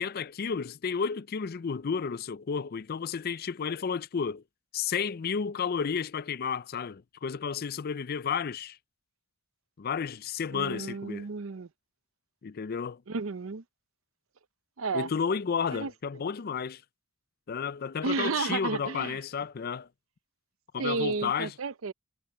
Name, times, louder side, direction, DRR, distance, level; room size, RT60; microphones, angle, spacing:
voice 1, 0.0-4.4 4.7-8.8 9.8-11.3 12.4-13.0 14.9-16.8 17.5-19.9 20.7-21.5, left 6 dB, 45° left, 0.4 m, -32 dB
voice 2, 10.5-11.7 13.1-13.6 14.8-15.1 15.7-15.9 18.0-19.2 20.8-21.9, right 4 dB, 75° right, 0.7 m, -32 dB
head